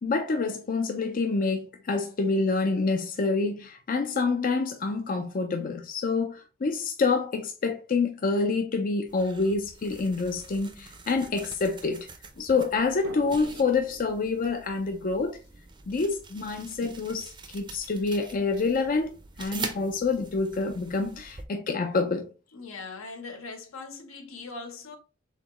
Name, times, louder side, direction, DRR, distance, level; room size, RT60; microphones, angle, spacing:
voice 1, 0.0-12.1 12.4-15.4 15.9-19.1 19.4-22.3, left 4 dB, 45° left, 0.5 m, -27 dB
sound 1, 9.1-21.5, right 4 dB, 25° right, 0.6 m, -44 dB
Drum, 13.0-16.4, right 1 dB, 65° right, 0.7 m, -47 dB
voice 2, 22.5-25.0, left 3 dB, 80° left, 1.1 m, -40 dB
4.2 x 3.8 x 2.9 m
head